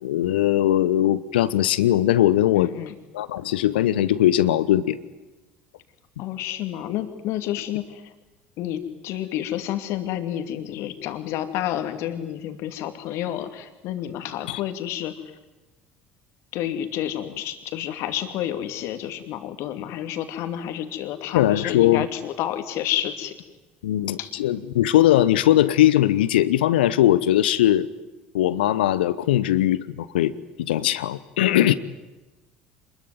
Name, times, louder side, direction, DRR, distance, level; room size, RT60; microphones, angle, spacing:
voice 1, 0.0-2.7 3.1-5.0 14.5-14.6 21.3-22.1 23.8-27.9 28.3-30.3 30.6-31.7, left 13 dB, 70° left, 16 dB, 0.9 m, -20 dB
voice 2, 2.5-2.9 6.2-8.1 8.6-15.2 16.5-23.3 24.2-24.3 31.5-31.8, left 11 dB, 55° left, 8 dB, 2.6 m, -30 dB
27.0 x 21.5 x 9.5 m, 1.1 s
figure-of-eight pair, 60°, 6 cm